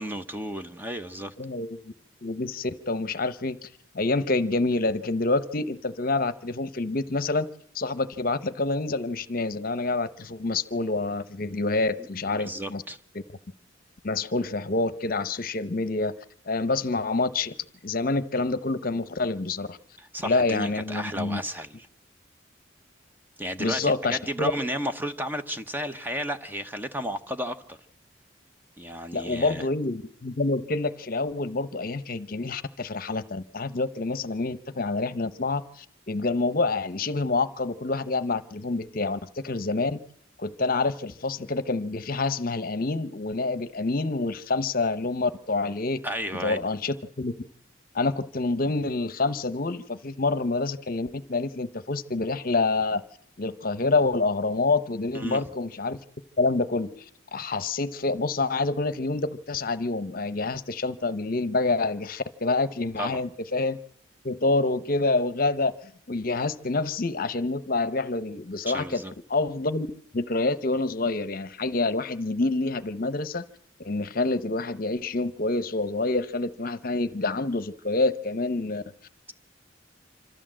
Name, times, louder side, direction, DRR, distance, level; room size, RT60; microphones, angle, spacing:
voice 1, 0.0-1.3 12.3-13.0 20.0-21.8 23.4-27.8 28.8-29.6 46.0-46.6 55.1-55.4 63.0-63.2 68.7-69.1, equal, 10° right, 0.8 m, -33 dB
voice 2, 1.4-1.9 2.2-3.7 3.9-7.5 7.7-12.8 14.0-16.1 16.5-17.5 17.8-19.8 20.2-21.4 23.6-24.5 29.1-40.0 40.4-46.0 46.4-47.3 47.9-53.0 53.4-56.0 56.4-56.9 57.3-63.8 64.2-65.7 66.1-69.0 69.3-69.9 70.1-73.4 73.8-78.8, left 3 dB, 45° left, 0.8 m, -27 dB
26.0 x 13.5 x 7.5 m
head